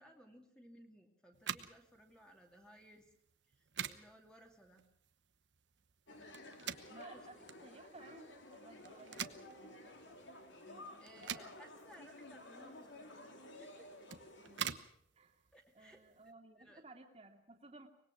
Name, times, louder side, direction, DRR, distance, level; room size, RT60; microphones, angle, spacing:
voice 1, 0.0-3.1 3.5-4.8 7.1-7.3 11.0-13.9 15.5-16.8, equal, 5° left, 2 dB, 2.5 m, -61 dB
sound 1, 1.3-16.3, right 8 dB, 70° right, 1.0 m, -48 dB
sound 2, 6.1-14.6, left 1 dB, 80° left, 4.2 m, -54 dB
voice 2, 6.4-11.6 14.4-14.8 15.2-15.5 15.7-17.9, right 2 dB, 30° right, 4 dB, 2.5 m, -59 dB
24.5 x 20.0 x 6.0 m, 0.72 s
head